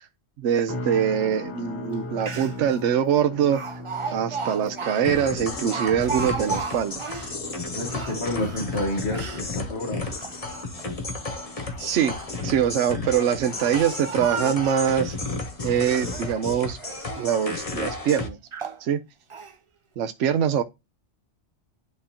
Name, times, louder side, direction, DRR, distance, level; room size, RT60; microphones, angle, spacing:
voice 1, 0.4-3.6 4.1-7.0 11.8-12.2 12.4-15.2 15.6-16.8 17.2-18.4 18.8-19.0 20.0-20.6, right 8 dB, 70° right, 0.9 m, -23 dB
sound 1, 0.7-15.9 16.2-16.6 17.1-17.3, left 2 dB, 85° left, 1.9 m, -41 dB
Speech, 1.9-2.0 2.2-2.7 3.5-7.4 7.8-9.5 10.0-10.8 11.8-12.3 13.0-15.1 15.6-16.4 16.8-17.3 17.9-18.0 18.5-18.8 19.3-19.5, right 5 dB, 45° right, 0.4 m, -35 dB
sound 2, 5.0-18.3, left 3 dB, 30° left, 1.1 m, -33 dB
voice 2, 7.7-10.1, left 1 dB, 60° left, 2.1 m, -29 dB
11.0 x 3.7 x 2.8 m
omnidirectional pair, 1.3 m